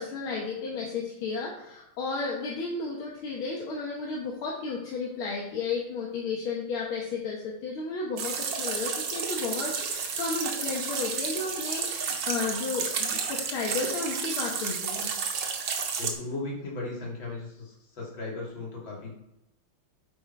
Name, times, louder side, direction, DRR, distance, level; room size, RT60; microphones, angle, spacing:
voice 1, 0.0-15.1, left 4 dB, 80° left, -3 dB, 2.1 m, -33 dB
sound 1, 8.2-16.1, right 6 dB, 65° right, 1.7 m, -31 dB
voice 2, 16.0-19.1, left 2 dB, 65° left, -3 dB, 3.1 m, -36 dB
8.7 x 5.3 x 4.5 m, 0.87 s
omnidirectional pair, 2.3 m